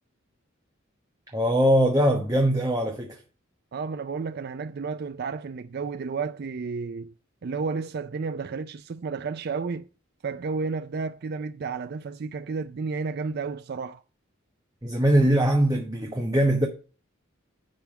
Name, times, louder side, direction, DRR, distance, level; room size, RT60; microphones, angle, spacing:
voice 1, 1.3-3.2 14.8-16.7, right 1 dB, 15° right, 1.1 m, -21 dB
voice 2, 3.7-7.1 7.4-9.9 10.2-14.0, right 4 dB, 50° right, 0.4 m, -32 dB
10.5 x 3.5 x 7.3 m
head